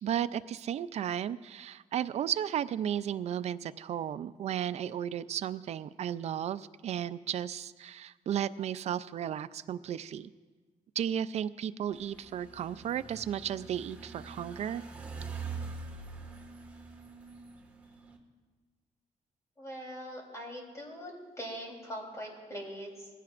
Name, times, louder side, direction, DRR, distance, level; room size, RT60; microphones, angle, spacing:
voice 1, 0.0-10.3 11.0-14.8, right 10 dB, 55° right, 14 dB, 0.4 m, -34 dB
sound 1, 11.9-18.2, right 4 dB, 10° right, 1.7 m, -44 dB
voice 2, 19.6-21.1 21.4-23.1, equal, 20° left, -1 dB, 3.5 m, -42 dB
20.5 x 15.5 x 2.5 m, 1.3 s
cardioid pair, 145°, 14 cm